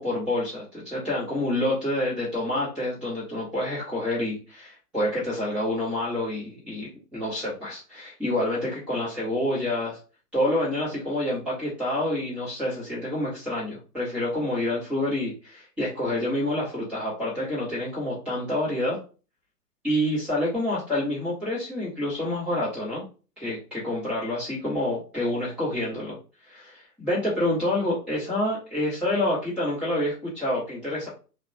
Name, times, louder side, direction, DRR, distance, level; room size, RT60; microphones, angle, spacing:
voice 1, 0.0-10.0 10.3-19.0 19.8-23.0 23.4-26.2 26.4-31.1, left 1 dB, 5° right, -11 dB, 0.5 m, -28 dB
2.8 x 2.1 x 2.4 m, 0.35 s
figure-of-eight pair, 125°, 47 cm